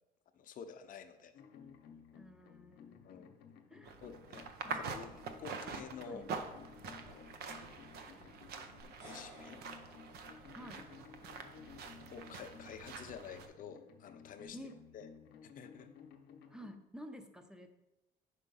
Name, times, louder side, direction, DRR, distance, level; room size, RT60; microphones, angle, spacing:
voice 1, 0.3-1.3 3.0-3.3 4.0-6.2 6.9-7.4 8.2-8.3 8.6-8.7 9.0-9.6 12.1-14.6 14.9-15.1 15.4-15.9, left 6 dB, 55° left, 9 dB, 0.6 m, -50 dB
sound 1, 1.3-16.7, left 6 dB, 85° left, 0.9 m, -56 dB
voice 2, 2.1-3.3 3.7-4.0 4.6-5.1 5.5-5.6 6.0-6.3 10.5-10.9 14.5-14.8 16.5-17.7, equal, 5° right, 7 dB, 0.6 m, -51 dB
sound 2, 3.8-13.5, right 5 dB, 70° right, 0.7 m, -46 dB
sound 3, 8.8-11.1, right 1 dB, 40° right, 2.5 m, -57 dB
4.9 x 4.5 x 5.5 m, 0.95 s
cardioid pair, 110°, 17 cm